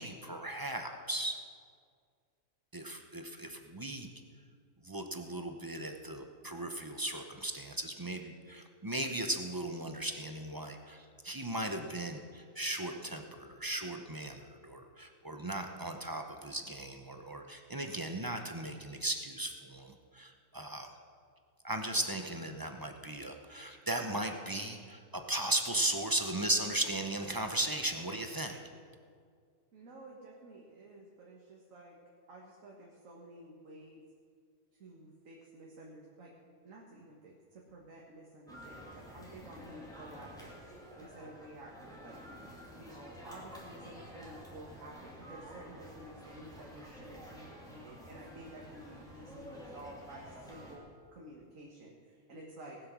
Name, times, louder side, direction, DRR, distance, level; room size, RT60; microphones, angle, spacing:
voice 1, 0.0-1.4 2.7-4.1 4.8-20.9 21.6-28.6, right 1 dB, 20° right, 5 dB, 0.6 m, -37 dB
voice 2, 29.7-32.0 32.3-34.0 34.7-36.3 36.6-40.6 40.9-42.4 42.7-50.8 51.1-52.8, right 1 dB, 70° right, -3 dB, 1.9 m, -52 dB
sound 1, 38.5-50.8, equal, 5° left, 2.4 m, -50 dB
19.0 x 7.9 x 6.1 m, 2.1 s
omnidirectional pair, 1.4 m